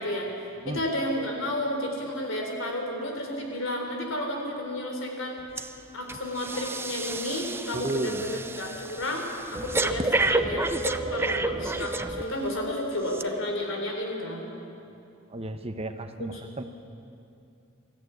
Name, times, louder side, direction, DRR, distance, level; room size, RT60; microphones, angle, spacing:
voice 1, 0.0-5.4 5.9-9.3 9.5-14.5 16.3-16.4, left 1 dB, 65° left, 2 dB, 3.9 m, -32 dB
Breathing, 5.6-5.8 6.1-12.5 13.1-13.2, right 2 dB, 10° right, 0.6 m, -30 dB
voice 2, 7.7-8.2 9.5-9.7 15.3-16.6, right 2 dB, 30° right, 8 dB, 0.9 m, -33 dB
23.0 x 14.0 x 9.7 m, 2.6 s
head